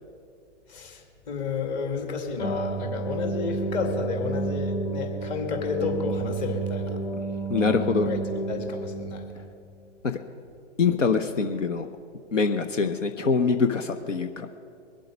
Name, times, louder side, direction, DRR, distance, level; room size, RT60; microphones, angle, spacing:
voice 1, 0.7-7.0 7.5-7.7 8.0-9.3, left 5 dB, 35° left, 3 dB, 2.3 m, -31 dB
sound 1, 2.4-9.5, right 3 dB, 60° left, 2.5 m, -31 dB
voice 2, 7.5-8.1 10.0-10.2 10.8-11.9 12.3-14.5, left 5 dB, 85° left, 7 dB, 1.0 m, -24 dB
22.5 x 7.8 x 5.2 m, 2.4 s
hypercardioid pair, 130°, 36 cm